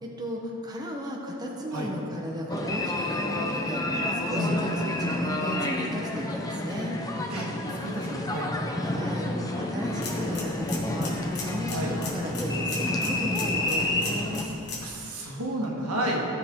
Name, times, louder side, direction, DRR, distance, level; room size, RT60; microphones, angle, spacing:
voice 1, 0.0-3.8 4.3-7.0 8.8-14.5, equal, 20° right, -1 dB, 0.8 m, -35 dB
sound 1, 2.5-14.5, left 1 dB, 15° left, 0.6 m, -29 dB
voice 2, 7.8-8.5 11.7-11.9 14.8-16.3, right 1 dB, 85° right, -2 dB, 1.6 m, -30 dB
sound 2, 9.8-14.9, left 3 dB, 50° left, 1.7 m, -39 dB
14.5 x 6.6 x 3.7 m, 2.9 s
head